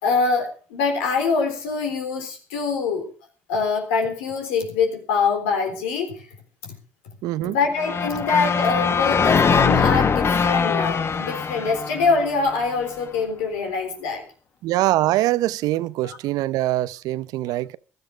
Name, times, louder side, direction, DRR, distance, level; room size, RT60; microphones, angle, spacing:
voice 1, 0.0-3.1 3.5-6.2 6.6-6.7 7.4-14.2 16.0-16.2, left 4 dB, 90° left, 3.8 m, -24 dB
voice 2, 7.2-7.6 14.6-17.8, right 16 dB, 75° right, 0.6 m, -23 dB
sound 1, 7.8-12.8, left 5 dB, 40° left, 1.1 m, -22 dB
16.0 x 12.5 x 5.0 m
supercardioid pair, 65°, 6 cm